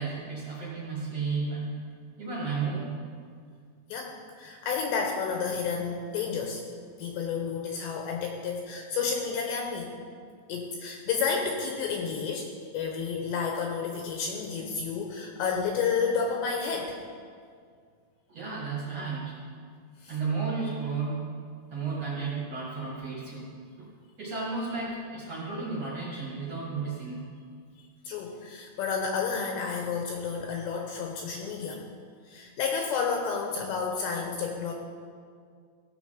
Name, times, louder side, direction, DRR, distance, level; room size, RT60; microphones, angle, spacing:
voice 1, 0.0-1.8 2.2-3.0 18.3-19.4 20.1-21.3 21.7-23.5 23.8-23.9 24.2-27.3, right 4 dB, 45° right, -7 dB, 2.3 m, -33 dB
voice 2, 3.9-6.6 7.0-9.9 10.5-12.5 12.7-17.0 20.0-20.2 28.0-31.8 32.3-34.7, left 5 dB, 75° left, 1 dB, 2.8 m, -31 dB
16.5 x 6.9 x 5.1 m, 2.1 s
omnidirectional pair, 5.7 m